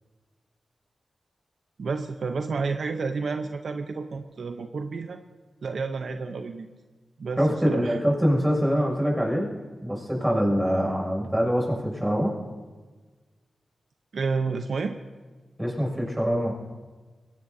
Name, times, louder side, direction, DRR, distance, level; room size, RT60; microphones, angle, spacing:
voice 1, 1.8-5.2 5.6-6.7 7.2-8.0 14.1-15.0, right 4 dB, 70° right, 6 dB, 0.8 m, -30 dB
voice 2, 7.4-9.5 9.8-12.3 15.6-16.5, equal, 10° right, 0 dB, 6.3 m, -24 dB
22.5 x 18.0 x 2.8 m, 1.4 s
cardioid pair, 65°, 0 cm